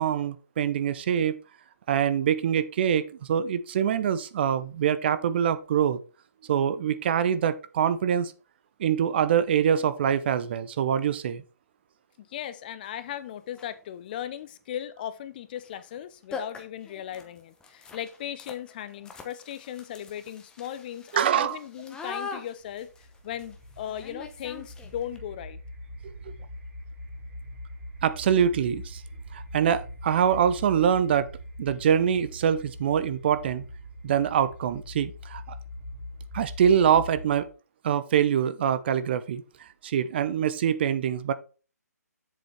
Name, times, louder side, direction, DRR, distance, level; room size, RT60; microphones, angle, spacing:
voice 1, 0.0-1.4 1.9-6.0 6.5-8.3 8.8-11.4 21.1-21.6 26.3-26.4 28.0-29.0 29.3-31.3 31.6-33.6 34.0-35.6 36.3-37.5 37.8-41.3, right 8 dB, 40° right, 0.7 m, -24 dB
voice 2, 12.2-22.9 23.2-25.6, left 10 dB, 30° left, 0.7 m, -37 dB
sound 1, 12.8-12.9 13.5-13.8 15.6-15.7 16.0-16.1 16.3-25.2, left 4 dB, 10° left, 0.9 m, -43 dB
sound 2, 22.6-37.5, equal, 20° right, 2.1 m, -42 dB
7.8 x 7.4 x 3.4 m
figure-of-eight pair, 140°, 9 cm